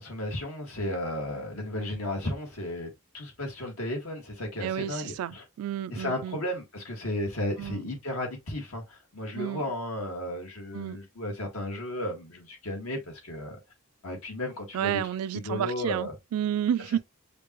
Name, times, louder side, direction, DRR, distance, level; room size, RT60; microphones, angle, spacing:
voice 1, 0.0-5.4 5.9-13.6 14.0-15.0 15.3-16.1, left 1 dB, 85° left, 1.9 m, -34 dB
voice 2, 4.6-6.4 7.6-7.8 9.3-9.6 10.7-11.0 14.7-17.0, right 10 dB, 90° right, 0.3 m, -31 dB
5.2 x 2.7 x 3.0 m
head